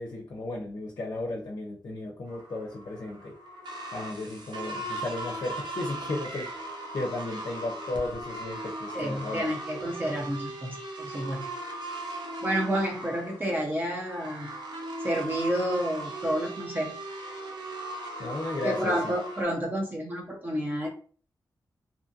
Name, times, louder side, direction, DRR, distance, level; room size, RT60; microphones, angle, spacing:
voice 1, 0.0-3.3 3.9-6.6 6.9-9.5 18.2-19.1, left 2 dB, 55° left, -1 dB, 0.5 m, -34 dB
sound 1, 2.3-19.4, right 1 dB, 75° right, 0.6 m, -38 dB
voice 2, 8.9-11.5 12.4-14.5 15.0-17.0 18.6-20.9, equal, 25° right, 0 dB, 0.5 m, -30 dB
2.6 x 2.5 x 2.5 m, 0.41 s
wide cardioid pair, 150°, 8 cm